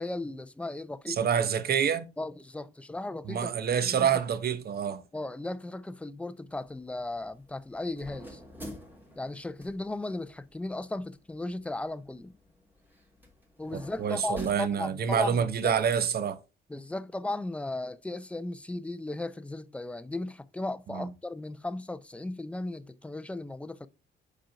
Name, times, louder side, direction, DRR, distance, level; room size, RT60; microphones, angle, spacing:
voice 1, 0.0-1.2 2.2-4.1 5.1-8.4 9.2-12.3 13.6-15.8 16.7-23.9, left 2 dB, 5° left, 0.5 m, -36 dB
voice 2, 1.1-2.1 3.3-5.0 13.7-16.4 20.9-21.1, right 8 dB, 50° right, 0.9 m, -27 dB
opening and closing fridge, 6.5-15.4, equal, 10° right, 2.8 m, -50 dB
5.0 x 4.5 x 5.7 m
cardioid pair, 90°, 20 cm